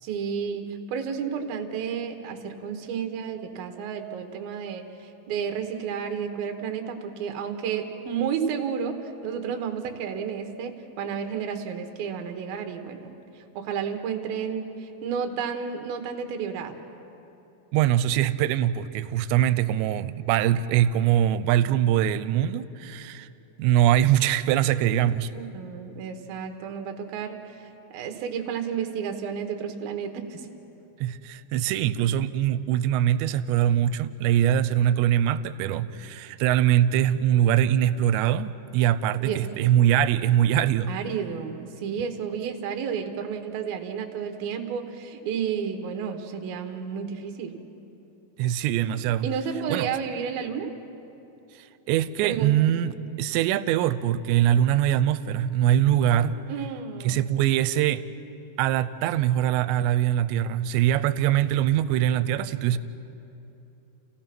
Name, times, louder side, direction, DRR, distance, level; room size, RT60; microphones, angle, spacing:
voice 1, 0.0-16.8 25.3-27.6 27.9-30.5 39.2-39.4 40.9-47.5 49.2-50.7 52.2-52.5 56.5-57.2, right 7 dB, 65° right, 5 dB, 2.8 m, -31 dB
voice 2, 17.7-23.3 23.6-25.3 31.0-40.9 48.4-49.3 49.7-49.9 51.9-56.3 57.0-58.0 58.6-62.8, right 11 dB, 90° right, 15 dB, 2.9 m, -23 dB
30.0 x 16.0 x 6.0 m, 2.9 s
omnidirectional pair, 5.0 m